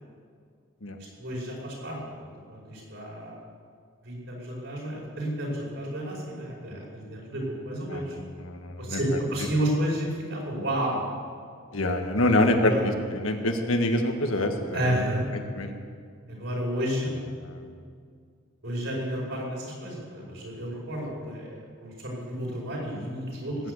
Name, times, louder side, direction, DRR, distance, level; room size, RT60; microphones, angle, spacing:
voice 1, 1.2-2.0 2.5-3.4 4.0-8.2 8.8-11.1 12.6-12.9 14.7-15.2 16.3-17.1 18.6-21.5 21.8-23.6, right 1 dB, 65° right, -3 dB, 5.5 m, -31 dB
voice 2, 7.9-9.0 11.7-14.8 15.6-15.7 17.4-17.7, left 1 dB, 90° left, 4 dB, 1.6 m, -26 dB
18.5 x 8.7 x 8.4 m, 2.1 s
head